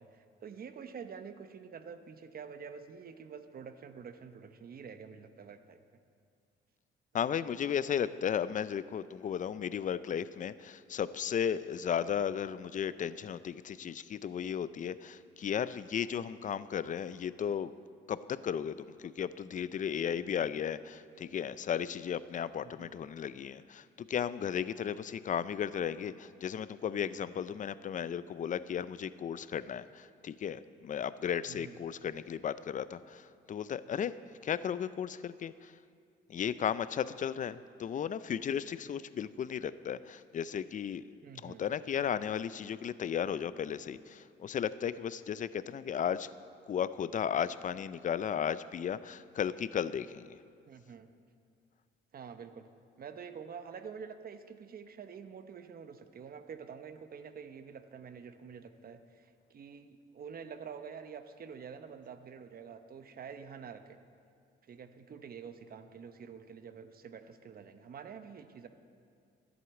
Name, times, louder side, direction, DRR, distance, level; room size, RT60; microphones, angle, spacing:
voice 1, 0.0-6.0 22.6-22.9 31.5-31.8 41.2-41.6 50.7-51.1 52.1-52.7 53.0-64.0 64.6-68.7, right 6 dB, 50° right, 9 dB, 0.8 m, -47 dB
voice 2, 7.1-17.7 18.1-34.1 34.4-35.7 36.3-41.0 41.4-46.3 46.7-50.4, left 8 dB, 40° left, 16 dB, 0.4 m, -35 dB
11.0 x 8.0 x 8.1 m, 2.3 s
cardioid pair, 90°, 20 cm